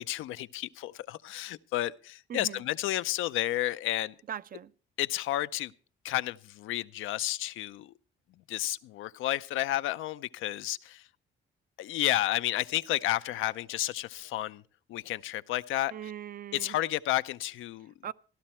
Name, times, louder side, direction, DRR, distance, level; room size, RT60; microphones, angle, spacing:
voice 1, 0.0-4.1 5.0-5.7 6.0-7.9 8.5-11.1 11.8-14.6 14.9-15.9 16.5-17.9, left 14 dB, 85° left, 0.6 m, -31 dB
voice 2, 2.3-2.6 4.3-4.7 15.9-16.8 18.0-18.1, right 9 dB, 45° right, 0.6 m, -40 dB
14.5 x 12.0 x 4.4 m
cardioid pair, 90°, 20 cm